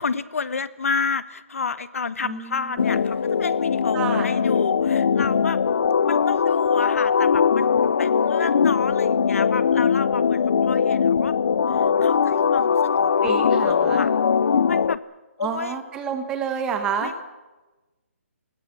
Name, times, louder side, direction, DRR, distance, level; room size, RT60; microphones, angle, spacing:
voice 1, 0.0-5.6 6.0-7.7 8.0-11.3 11.7-14.1 14.7-15.0 15.4-15.8 17.0-17.2, left 5 dB, 75° left, 15 dB, 1.2 m, -31 dB
voice 2, 2.2-3.0 3.9-4.3 13.2-14.0 15.4-17.1, right 7 dB, 10° right, 7 dB, 1.7 m, -29 dB
sound 1, 2.8-15.0, left 6 dB, 55° left, 0.6 m, -20 dB
26.5 x 21.5 x 6.3 m, 1.2 s
hypercardioid pair, 170°, 8 cm